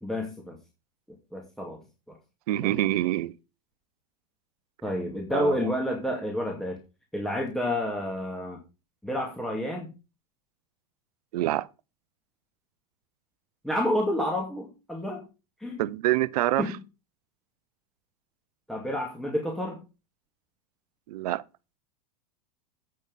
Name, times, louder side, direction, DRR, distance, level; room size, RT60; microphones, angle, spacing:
voice 1, 0.0-0.6 1.3-1.8 2.6-2.8 4.8-6.8 7.1-8.6 9.0-9.9 13.6-15.2 15.6-15.8 16.6-16.8 18.7-19.8, left 1 dB, ahead, 2.3 m, -29 dB
voice 2, 2.5-3.3 5.3-5.7 11.3-11.7 15.8-16.8 21.1-21.4, right 15 dB, 70° right, 0.7 m, -26 dB
8.7 x 6.2 x 5.3 m
hypercardioid pair, 105°, 20 cm